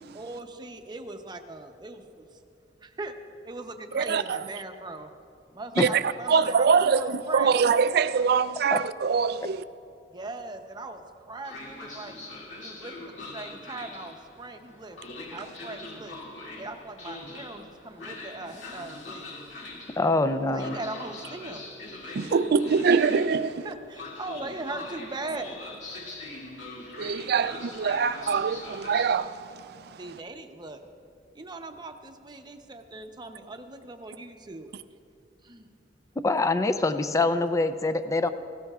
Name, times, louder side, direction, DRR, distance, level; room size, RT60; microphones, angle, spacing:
voice 1, 0.1-2.4 2.8-3.1 3.4-5.1 5.5-7.6 10.1-12.2 12.6-15.0 15.3-16.2 16.6-19.4 20.5-21.6 22.0-22.2 23.6-25.6 28.0-28.1 30.0-30.8 31.3-34.7 35.4-35.7, right 2 dB, 25° right, 0.7 m, -40 dB
voice 2, 3.9-4.4 5.8-9.6 22.1-23.7 27.0-29.5, right 5 dB, 60° right, 0.4 m, -24 dB
Train, 11.4-29.1, left 2 dB, 80° left, 2.3 m, -42 dB
voice 3, 20.0-20.8 36.2-38.3, left 2 dB, 15° left, 0.4 m, -24 dB
18.5 x 16.5 x 2.4 m
head